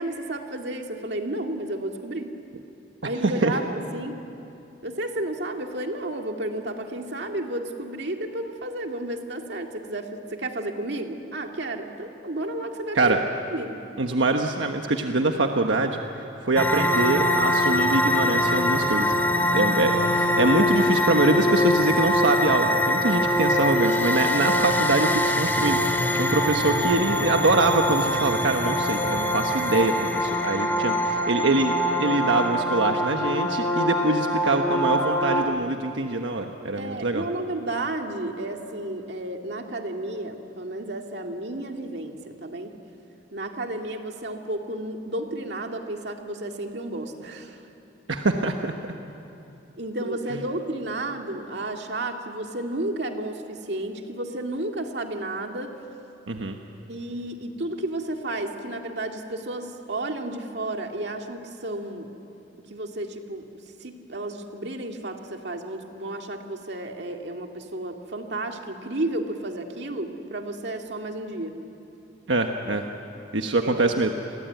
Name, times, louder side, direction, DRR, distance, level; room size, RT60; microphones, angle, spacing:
voice 1, 0.0-2.3 3.0-4.2 4.8-13.2 13.5-13.8 36.8-42.7 43.3-47.6 49.8-55.8 56.9-62.1 62.6-63.5 63.8-71.6 73.6-74.0, right 1 dB, 65° right, 3 dB, 2.2 m, -32 dB
voice 2, 3.2-3.5 12.9-13.2 14.0-19.1 19.5-37.2 48.1-48.7 50.0-50.2 56.3-56.6 72.3-72.8 73.3-74.1, right 2 dB, 90° right, 4 dB, 1.3 m, -24 dB
sound 1, 16.6-35.4, left 1 dB, 10° left, 2.3 m, -23 dB
29.0 x 22.0 x 9.3 m, 2.9 s
head